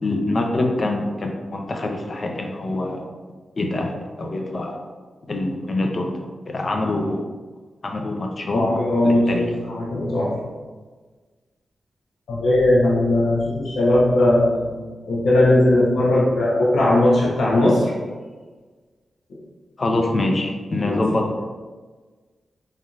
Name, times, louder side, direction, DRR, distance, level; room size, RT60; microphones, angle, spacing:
voice 1, 0.0-3.0 3.6-4.8 5.3-6.1 6.5-7.2 7.8-9.5 19.8-21.4, left 2 dB, 45° left, 2 dB, 0.6 m, -25 dB
voice 2, 8.5-10.3 12.3-14.8 15.0-17.9 19.3-19.4 20.8-21.0, left 1 dB, 85° left, -6 dB, 0.9 m, -18 dB
4.1 x 3.4 x 2.4 m, 1.4 s
cardioid pair, 70°, 0 cm